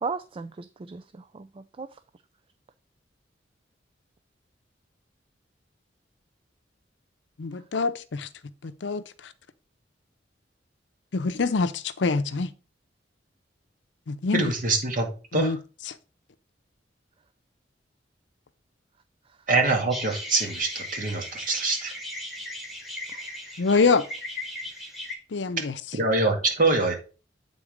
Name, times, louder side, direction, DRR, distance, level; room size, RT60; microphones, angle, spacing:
voice 1, 0.0-1.9 23.1-23.3, right 4 dB, 30° right, 0.3 m, -36 dB
voice 2, 7.4-8.3 8.6-9.3 11.1-12.5 14.1-14.5 15.3-15.6 15.9-16.0 23.6-24.0 25.3-25.8, left 4 dB, 75° left, 0.6 m, -25 dB
voice 3, 14.3-15.1 15.3-15.5 19.5-21.9 25.9-26.9, right 3 dB, 50° right, 2.0 m, -24 dB
sound 1, 19.9-25.2, left 1 dB, ahead, 1.8 m, -37 dB
8.5 x 3.9 x 5.1 m
head